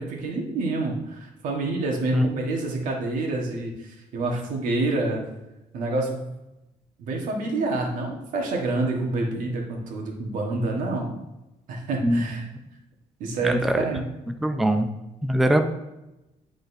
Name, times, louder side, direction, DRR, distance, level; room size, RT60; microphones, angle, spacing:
voice 1, 0.0-5.2 5.7-6.3 7.0-11.1 11.7-12.5 13.2-14.0, right 2 dB, 80° right, 0 dB, 1.4 m, -27 dB
voice 2, 13.4-13.8 14.4-14.9 15.2-15.7, equal, ahead, 6 dB, 0.4 m, -22 dB
9.9 x 3.9 x 2.6 m, 0.96 s
cardioid pair, 115°, 13 cm